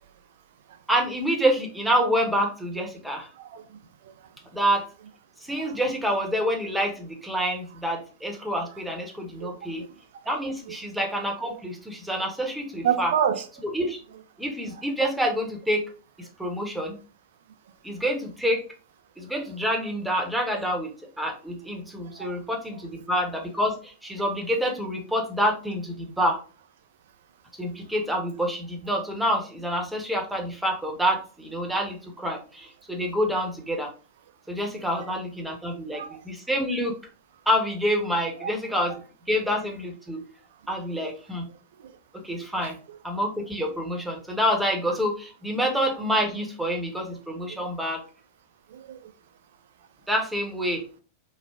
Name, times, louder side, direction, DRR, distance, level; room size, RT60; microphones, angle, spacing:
voice 1, 0.9-3.3 4.5-4.9 5.4-9.8 10.3-13.1 13.7-14.0 14.4-15.9 16.2-17.0 17.8-18.6 19.2-26.4 27.6-33.9 34.5-36.9 37.5-38.9 39.3-40.2 40.7-41.5 42.1-42.8 43.0-48.0 50.1-50.8, equal, 5° right, 0.7 m, -27 dB
voice 2, 3.3-4.3 5.6-5.8 9.4-9.9 10.7-10.8 11.5-11.6 12.8-13.5 14.7-14.8 22.0-22.4 34.9-35.1 35.9-36.2 38.4-38.5 41.8-41.9 42.6-42.7 47.5-47.6 48.7-49.1, right 8 dB, 55° right, 0.3 m, -30 dB
3.1 x 2.0 x 2.3 m
figure-of-eight pair, 90°, 0 cm